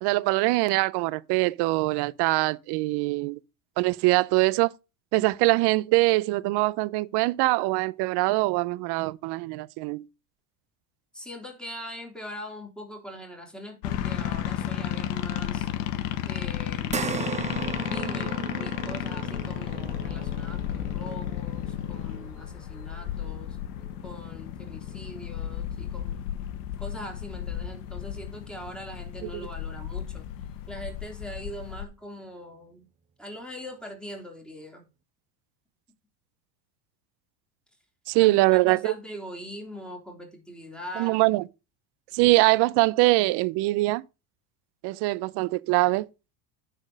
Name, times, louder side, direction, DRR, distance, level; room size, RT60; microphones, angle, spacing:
voice 1, 0.0-3.4 3.8-4.7 5.1-10.0 38.1-38.9 41.0-41.4 42.1-44.0 44.8-46.1, right 21 dB, 55° right, 0.7 m, -23 dB
voice 2, 11.1-15.7 16.2-17.2 17.8-23.6 24.0-26.3 26.8-30.3 30.7-32.9 33.2-34.8 38.2-38.4 38.6-41.2, equal, ahead, 3.4 m, -42 dB
sound 1, 13.8-31.8, left 11 dB, 70° left, 1.3 m, -33 dB
sound 2, 16.9-25.5 25.9-26.1 27.5-27.6, right 7 dB, 15° right, 0.6 m, -38 dB
9.8 x 4.5 x 6.5 m
supercardioid pair, 100°, 49 cm